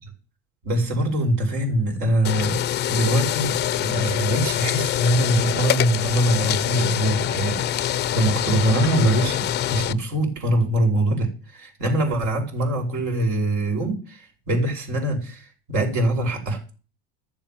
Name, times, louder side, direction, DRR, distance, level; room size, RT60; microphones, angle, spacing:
voice 1, 0.6-2.6 2.9-16.6, right 1 dB, 65° right, 4.9 m, -23 dB
sound 1, 2.2-9.9, left 11 dB, 35° left, 0.6 m, -25 dB
14.0 x 7.2 x 7.4 m
supercardioid pair, 100°, 30 cm